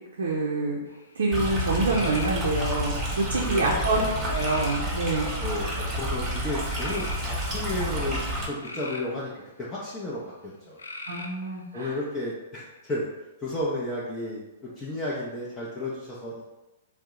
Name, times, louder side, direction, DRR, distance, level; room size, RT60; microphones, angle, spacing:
voice 1, 0.2-0.8 1.2-5.3 11.1-12.0, right 2 dB, 70° right, -1 dB, 0.5 m, -26 dB
sound 1, 0.9-1.3 1.9-2.4 3.1-3.6 4.3-4.9 5.6-5.9 6.7-7.2 8.3-9.1 10.8-11.5, left 2 dB, 80° left, 0.4 m, -39 dB
Stream, 1.3-8.5, equal, 20° right, 0.9 m, -30 dB
voice 2, 3.4-4.1 5.4-9.3 9.6-10.8 11.7-13.1 13.4-16.4, left 1 dB, 20° left, -8 dB, 0.6 m, -33 dB
2.7 x 2.1 x 3.6 m, 1.0 s
figure-of-eight pair, 115°, 0 cm